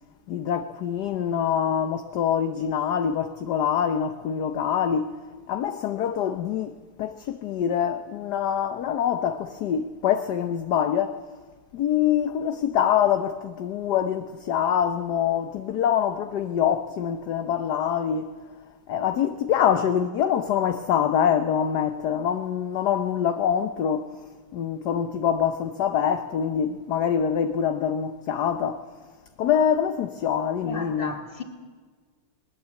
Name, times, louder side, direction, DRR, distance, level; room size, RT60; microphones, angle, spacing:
voice 1, 0.3-5.2 5.5-11.1 11.7-18.3 18.9-24.1 24.5-28.8 29.4-31.1, left 8 dB, 60° left, 1.3 m, -25 dB
voice 2, 30.6-31.4, left 4 dB, 25° left, 2.4 m, -35 dB
20.5 x 20.5 x 8.2 m
omnidirectional pair, 2.2 m